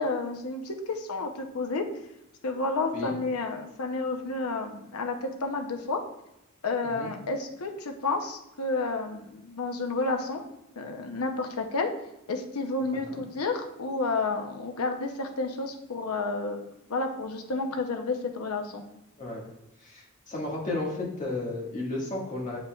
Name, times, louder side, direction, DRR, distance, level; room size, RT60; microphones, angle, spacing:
voice 1, 0.0-1.8 2.4-6.0 6.6-10.4 10.8-11.9 12.3-16.6 16.9-18.8, left 3 dB, 90° left, 4 dB, 0.8 m, -30 dB
voice 2, 19.8-22.6, left 2 dB, 35° left, -4 dB, 1.7 m, -33 dB
8.3 x 4.8 x 2.4 m, 0.87 s
head